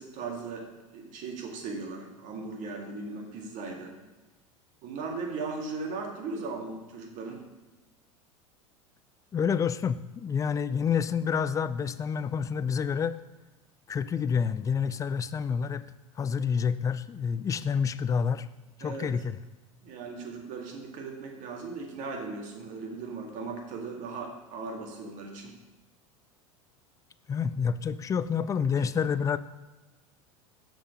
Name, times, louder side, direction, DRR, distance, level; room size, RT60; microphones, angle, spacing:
voice 1, 0.0-3.9 4.8-7.5 18.8-19.1 19.8-25.5 28.7-28.8, right 4 dB, 45° right, 1 dB, 1.9 m, -38 dB
voice 2, 9.3-13.2 13.9-15.8 16.2-18.5 18.8-19.4 27.3-29.4, left 6 dB, 20° left, 14 dB, 0.4 m, -28 dB
6.9 x 6.2 x 5.1 m, 1.1 s
figure-of-eight pair, 80°, 17 cm